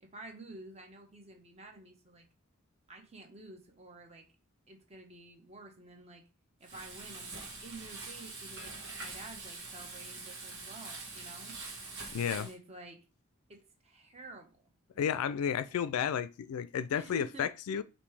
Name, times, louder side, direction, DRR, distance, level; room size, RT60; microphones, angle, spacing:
voice 1, 0.0-2.3 2.9-4.3 4.7-6.2 6.6-11.6 12.3-13.0 13.5-14.5 15.4-15.8 16.9-17.5, right 2 dB, 30° right, 0.9 m, -50 dB
Frying (food), 6.6-12.5, right 3 dB, 50° right, 1.4 m, -44 dB
voice 2, 12.1-12.5 15.0-17.8, left 8 dB, 85° left, 0.3 m, -32 dB
5.2 x 2.7 x 3.3 m
head